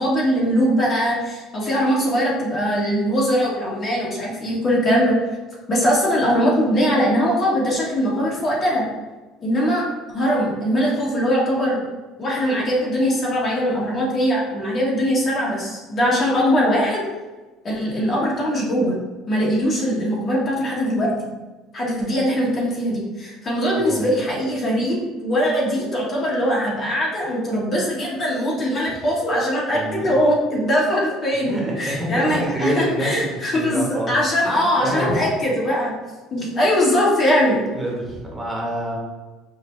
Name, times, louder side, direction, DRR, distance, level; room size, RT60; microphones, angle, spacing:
voice 1, 0.0-5.1 5.7-8.8 9.4-9.9 10.1-11.8 12.2-17.0 17.6-19.0 19.3-21.1 21.7-35.9 36.3-37.6, equal, 40° left, -3 dB, 1.2 m, -21 dB
voice 2, 29.7-30.2 31.4-33.2 33.5-34.1 34.5-35.1 37.7-39.0, right 1 dB, 10° right, -3 dB, 1.0 m, -27 dB
5.0 x 2.2 x 3.2 m, 1.2 s
supercardioid pair, 100°, 0 cm